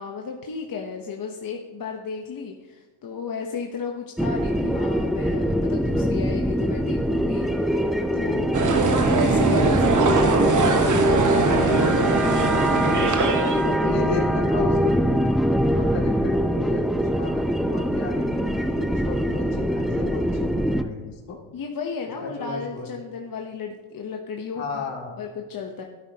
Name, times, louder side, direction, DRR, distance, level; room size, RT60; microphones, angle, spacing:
voice 1, 0.0-8.5 9.1-14.1 21.5-24.8 25.2-25.8, left 5 dB, 45° left, 2 dB, 1.0 m, -33 dB
sound 1, 4.2-20.8, equal, ahead, 0.4 m, -23 dB
sound 2, 8.5-13.7, right 4 dB, 40° right, 1.2 m, -22 dB
voice 2, 13.8-14.9 15.7-17.4 17.7-21.4 22.2-22.9 24.6-25.2, left 4 dB, 65° left, -1 dB, 2.5 m, -34 dB
11.5 x 9.6 x 2.9 m, 1.4 s
cardioid pair, 90°, 49 cm